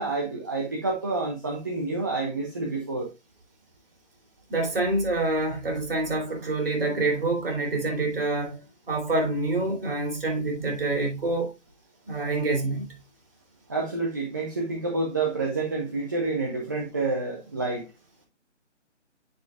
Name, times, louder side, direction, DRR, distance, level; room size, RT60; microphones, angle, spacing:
voice 1, 0.0-3.1 13.7-17.9, right 3 dB, 15° right, 0.6 m, -28 dB
voice 2, 4.5-8.6 8.9-11.5 12.1-13.0, right 2 dB, 50° right, 2.9 m, -26 dB
7.8 x 6.3 x 2.3 m
figure-of-eight pair, 155°, 36 cm